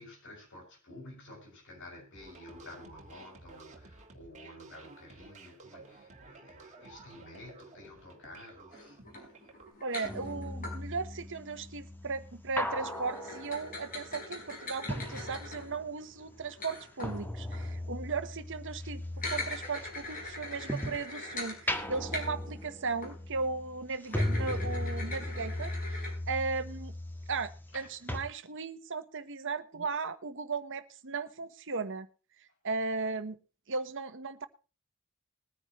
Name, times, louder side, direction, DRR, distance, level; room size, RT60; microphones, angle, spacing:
voice 1, 0.0-9.4 27.7-27.9 32.5-32.6, left 1 dB, 60° left, 6.7 m, -51 dB
sound 1, 2.1-9.7, right 3 dB, 35° right, 2.2 m, -53 dB
sound 2, 8.7-10.8 12.8-17.8 19.0-22.7 23.0-23.2 24.1-26.1, left 2 dB, 40° left, 5.1 m, -42 dB
voice 2, 9.8-19.0 19.3-26.9 27.3-32.1 32.6-33.4 33.7-34.5, right 4 dB, 60° right, 1.2 m, -36 dB
sound 3, 10.0-16.0 16.3-21.1 21.5-27.8 28.1-28.2, left 1 dB, 10° left, 1.6 m, -38 dB
21.0 x 9.9 x 3.1 m
head